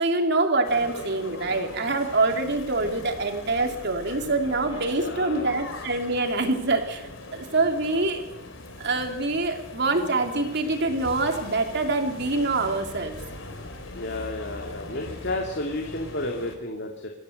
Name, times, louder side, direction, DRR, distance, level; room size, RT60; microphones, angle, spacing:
voice 1, 0.0-7.0 7.3-8.2 8.8-13.1, right 2 dB, 60° right, 4 dB, 3.1 m, -25 dB
sound 1, 0.6-16.6, left 2 dB, 80° left, 3.8 m, -40 dB
voice 2, 4.9-5.5 13.9-17.1, left 2 dB, 60° left, 2 dB, 2.5 m, -32 dB
26.0 x 15.5 x 8.0 m, 0.93 s
head